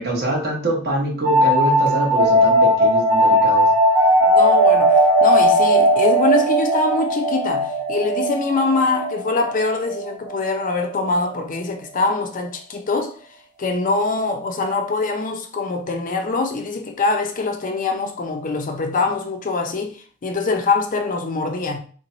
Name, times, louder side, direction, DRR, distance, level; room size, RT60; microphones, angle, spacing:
voice 1, 0.0-3.7 4.0-4.1, right 1 dB, 45° right, 1.0 m, -24 dB
sound 1, 1.2-10.6, equal, 20° right, 1.2 m, -17 dB
voice 2, 4.3-13.2 13.6-21.8, left 3 dB, 40° left, 0.5 m, -23 dB
3.0 x 2.2 x 3.8 m
head